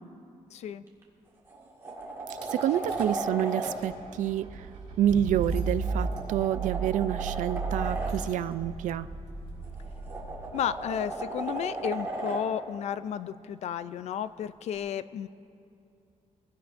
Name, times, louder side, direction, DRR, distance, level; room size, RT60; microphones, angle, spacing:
voice 1, 0.5-0.8 10.5-15.3, left 9 dB, 60° left, 14 dB, 0.4 m, -33 dB
sound 1, 0.9-1.0 1.5-3.7 5.4-8.1 9.6-12.4 14.7-14.8, right 2 dB, 20° right, 1.8 m, -36 dB
Rattle / Car / Engine starting, 2.3-2.5 2.9-3.2 3.5-11.2, right 4 dB, 70° right, 3.5 m, -35 dB
voice 2, 2.5-4.7 5.0-9.1, right 11 dB, 90° right, 15 dB, 0.4 m, -28 dB
22.5 x 16.5 x 2.6 m, 2.6 s
wide cardioid pair, 175°, 13 cm